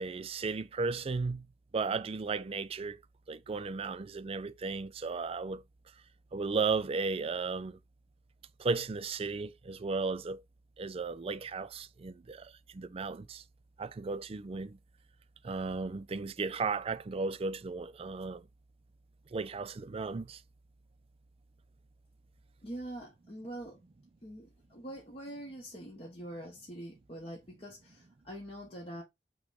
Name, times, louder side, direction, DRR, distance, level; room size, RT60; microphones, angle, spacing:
voice 1, 0.0-1.5 1.7-3.0 3.3-5.6 6.3-7.8 8.6-10.4 10.8-13.4 13.8-14.8 15.4-18.5 19.3-20.4, right 4 dB, 35° right, 0.4 m, -35 dB
voice 2, 22.6-23.8 24.2-29.0, right 1 dB, 35° left, 1.0 m, -44 dB
5.8 x 2.2 x 3.8 m
head